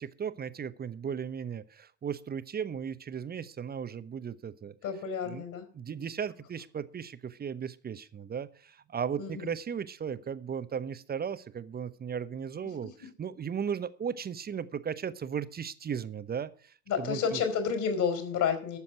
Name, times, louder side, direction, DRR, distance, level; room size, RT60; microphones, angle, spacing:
voice 1, 0.0-4.7 5.3-5.4 5.7-17.4, right 7 dB, 20° right, 14 dB, 0.9 m, -36 dB
voice 2, 4.8-5.7 9.2-9.5 16.9-18.8, left 6 dB, 45° left, 7 dB, 4.3 m, -30 dB
13.0 x 7.0 x 7.9 m, 0.43 s
figure-of-eight pair, 75°, 44 cm